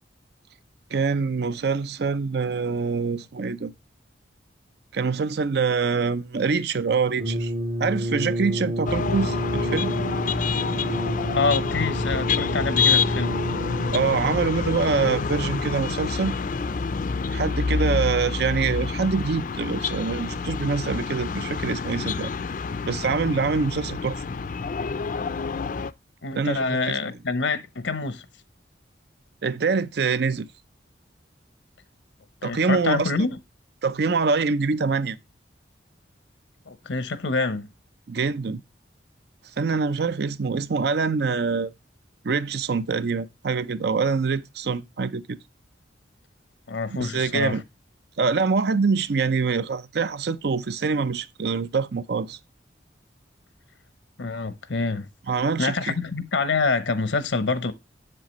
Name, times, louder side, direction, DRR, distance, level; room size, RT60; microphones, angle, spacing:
voice 1, 0.9-3.7 4.9-7.5 7.8-9.9 13.9-16.4 17.3-22.3 22.9-24.2 26.3-27.0 29.4-30.5 32.4-33.3 33.8-35.2 38.1-38.6 39.6-41.7 42.2-45.4 46.9-47.6 48.2-52.4 55.3-55.9, right 4 dB, 60° right, 0.5 m, -25 dB
Brass instrument, 7.1-14.3, equal, 75° right, 2.4 m, -29 dB
sound 1, 8.8-25.9, left 5 dB, 45° left, 0.4 m, -27 dB
voice 2, 11.3-13.4 26.2-28.2 32.4-33.3 36.7-37.7 46.7-47.6 54.2-55.1 55.3-57.7, left 4 dB, 85° left, 0.8 m, -26 dB
7.6 x 7.4 x 3.0 m
head